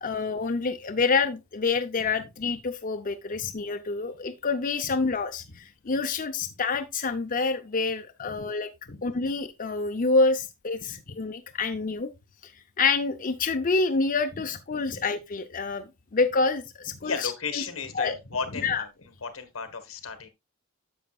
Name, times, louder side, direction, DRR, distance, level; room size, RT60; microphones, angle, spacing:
voice 1, 0.0-8.7 9.0-12.1 12.4-12.5 12.8-17.6 17.9-18.2 18.6-18.8, left 4 dB, 40° left, 0.6 m, -27 dB
voice 2, 17.0-18.9 19.2-20.3, left 5 dB, 90° left, 1.5 m, -34 dB
10.0 x 7.1 x 2.4 m
head